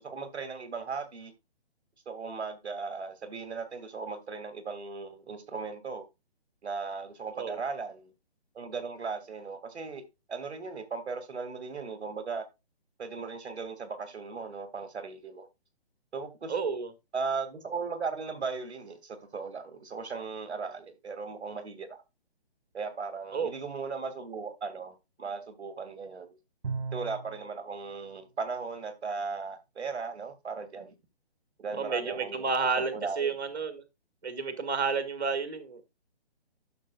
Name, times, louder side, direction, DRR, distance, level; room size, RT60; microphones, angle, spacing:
voice 1, 0.0-1.3 2.0-6.0 6.6-8.1 8.5-10.0 10.3-12.4 13.0-15.5 16.1-16.5 17.1-22.0 22.7-26.3 26.9-31.0 31.6-32.5 32.8-33.3, right 4 dB, 5° right, 1.3 m, -37 dB
voice 2, 16.5-16.9 23.3-23.5 31.7-33.8 34.2-35.8, right 5 dB, 20° right, 1.1 m, -31 dB
Bowed string instrument, 26.6-27.5, right 4 dB, 55° right, 0.9 m, -36 dB
11.5 x 6.7 x 2.3 m
hypercardioid pair, 180°, 32 cm